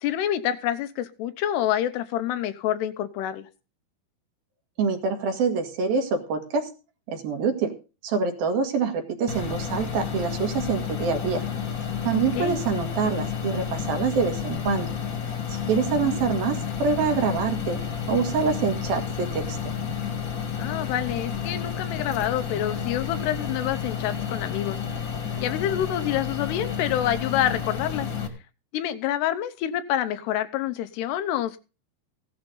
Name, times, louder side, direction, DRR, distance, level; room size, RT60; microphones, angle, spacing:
voice 1, 0.0-3.5 12.1-12.6 15.8-16.2 20.6-24.8 25.4-28.1 28.7-31.6, left 11 dB, 85° left, 11 dB, 3.1 m, -27 dB
voice 2, 4.8-6.7 7.1-7.7 8.0-11.4 12.1-14.9 15.3-17.8 18.1-19.6, right 5 dB, 65° right, 4 dB, 3.6 m, -26 dB
sound 1, 9.3-28.3, left 7 dB, 40° left, 1.8 m, -31 dB
16.5 x 11.0 x 3.9 m, 0.32 s
omnidirectional pair, 4.7 m